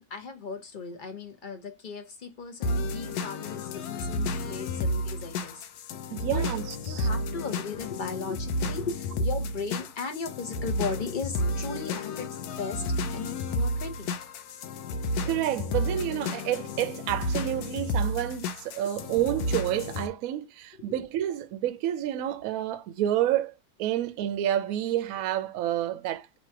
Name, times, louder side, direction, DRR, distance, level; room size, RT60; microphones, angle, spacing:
voice 1, 0.0-5.6 6.0-6.5 6.9-12.3 12.6-12.8 13.1-14.1, left 4 dB, 45° left, 0.7 m, -37 dB
sound 1, 2.6-20.1, left 1 dB, 80° left, 1.1 m, -31 dB
voice 2, 6.1-7.1 15.3-23.5 23.8-26.4, right 12 dB, 70° right, 0.9 m, -29 dB
3.0 x 3.0 x 4.4 m
omnidirectional pair, 1.7 m